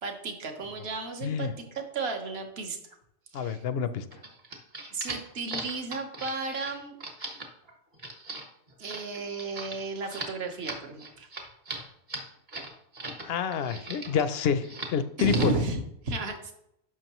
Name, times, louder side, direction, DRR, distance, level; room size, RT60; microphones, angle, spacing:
voice 1, 0.0-2.8 3.3-3.6 4.9-7.0 8.8-11.3 15.2-16.5, right 3 dB, 50° right, 4 dB, 1.3 m, -33 dB
voice 2, 1.2-1.5 3.3-4.0 13.2-15.6, left 7 dB, 60° left, 12 dB, 0.7 m, -28 dB
sound 1, 4.1-13.2 13.5-14.3 14.6-15.0 15.2-15.6, right 2 dB, 35° right, 1.4 m, -39 dB
11.0 x 6.3 x 3.0 m, 0.78 s
omnidirectional pair, 1.4 m